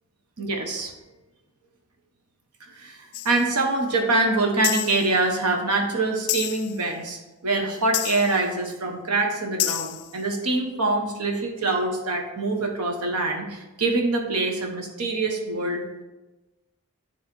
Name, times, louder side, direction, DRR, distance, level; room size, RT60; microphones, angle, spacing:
voice 1, 0.4-0.9 2.7-16.0, right 2 dB, 85° right, 2 dB, 1.2 m, -25 dB
sound 1, 3.1-3.5 4.6-5.1 6.3-6.8 7.9-8.4 9.6-10.1, left 14 dB, 75° left, 0.4 m, -29 dB
9.6 x 3.4 x 4.4 m, 1.1 s
head